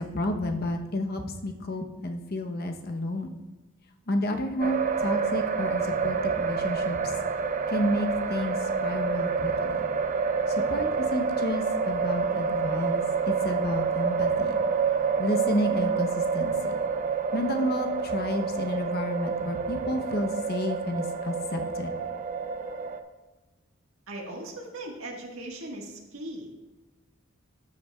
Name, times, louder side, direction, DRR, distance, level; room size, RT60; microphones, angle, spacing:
voice 1, 0.0-3.3 4.1-7.0 7.7-8.6 8.8-9.9 10.7-14.6 15.2-16.1 16.3-16.7 17.3-21.9, left 1 dB, 50° left, 5 dB, 0.8 m, -31 dB
sound 1, 4.6-23.0, right 5 dB, 40° right, 0.5 m, -28 dB
voice 2, 24.1-26.5, right 1 dB, 75° right, 0 dB, 1.5 m, -39 dB
13.5 x 7.3 x 2.3 m, 1.1 s
head